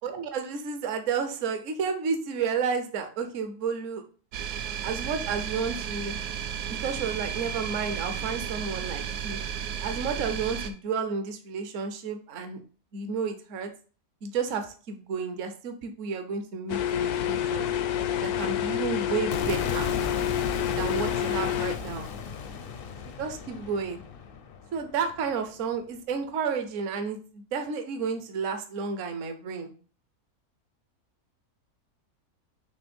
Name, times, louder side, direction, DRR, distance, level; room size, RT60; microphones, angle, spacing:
voice 1, 0.0-4.0 4.8-6.2 6.7-9.4 9.8-12.6 12.9-13.7 14.2-17.7 18.2-19.9 20.8-22.1 23.2-24.0 24.7-29.7, right 5 dB, 60° right, 7 dB, 1.1 m, -31 dB
sound 1, 4.3-10.7, right 8 dB, 85° right, 1.2 m, -33 dB
sound 2, 16.7-21.8, left 10 dB, 85° left, 1.1 m, -28 dB
sound 3, 19.3-25.5, left 6 dB, 60° left, 0.6 m, -36 dB
6.1 x 3.1 x 5.2 m, 0.40 s
omnidirectional pair, 1.6 m